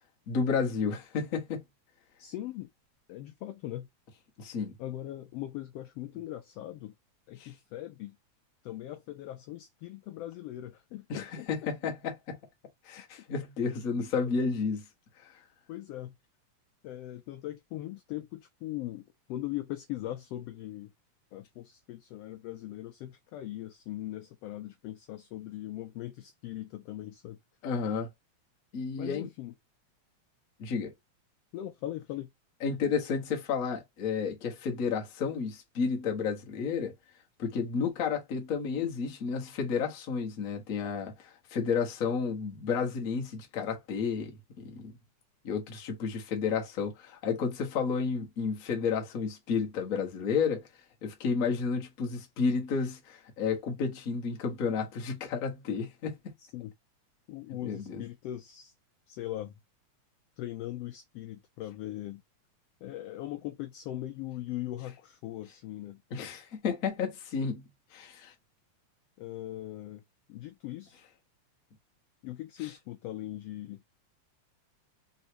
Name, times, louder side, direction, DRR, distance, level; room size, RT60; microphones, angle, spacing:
voice 1, 0.3-1.6 4.4-4.7 7.4-7.5 11.1-12.3 12.8-14.8 15.2-15.3 27.6-28.1 28.7-29.3 30.6-30.9 32.6-36.9 37.4-44.9 45.4-50.7 51.0-56.3 57.6-58.0 66.1-68.3, left 5 dB, 55° left, 0.9 m, -31 dB
voice 2, 2.2-2.7 3.1-3.9 4.8-6.9 7.3-8.2 8.6-11.5 15.7-16.2 16.8-20.9 21.3-27.4 29.0-29.5 31.5-32.3 56.4-56.7 57.3-58.7 59.1-59.5 60.4-62.2 62.8-66.0 69.2-70.0 70.3-71.1 72.2-73.8, left 14 dB, 85° left, 1.4 m, -40 dB
4.7 x 3.1 x 2.8 m
omnidirectional pair, 3.3 m